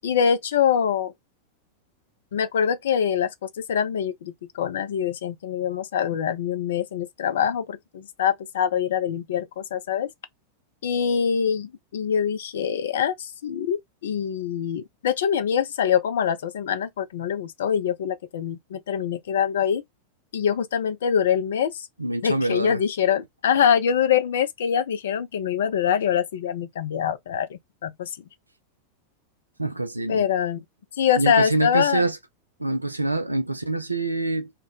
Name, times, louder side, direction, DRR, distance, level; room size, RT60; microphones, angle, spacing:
voice 1, 0.0-1.1 2.3-10.1 10.8-19.8 20.3-21.9 22.2-28.1 30.1-30.6 31.0-32.0, left 8 dB, 60° left, 0.4 m, -24 dB
voice 2, 22.0-22.8 29.6-30.2 31.2-32.2 32.6-34.5, right 2 dB, 85° right, 0.4 m, -25 dB
2.7 x 2.1 x 3.5 m
figure-of-eight pair, 90°, 0 cm